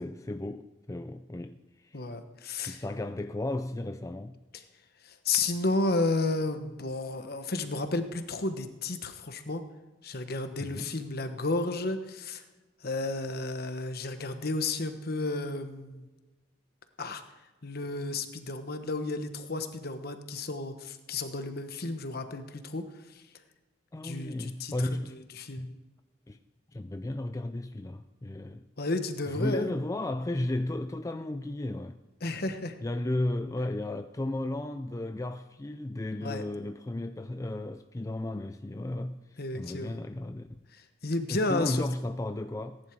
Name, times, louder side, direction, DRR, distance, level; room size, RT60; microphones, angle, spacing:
voice 1, 0.0-2.0 2.7-4.4 10.6-10.9 23.9-25.2 25.5-25.8 26.3-26.4 26.7-28.6 29.3-32.0 32.8-40.6 41.3-42.8, left 1 dB, 15° left, 0.4 m, -34 dB
voice 2, 1.9-2.8 5.0-9.6 10.0-12.4 12.8-16.1 17.0-17.2 17.6-22.8 23.1-23.2 24.0-25.0 25.4-25.6 28.8-29.7 32.2-32.8 36.2-36.4 39.4-40.0 40.7-41.8, left 2 dB, 50° left, 1.2 m, -32 dB
18.5 x 11.0 x 4.7 m
head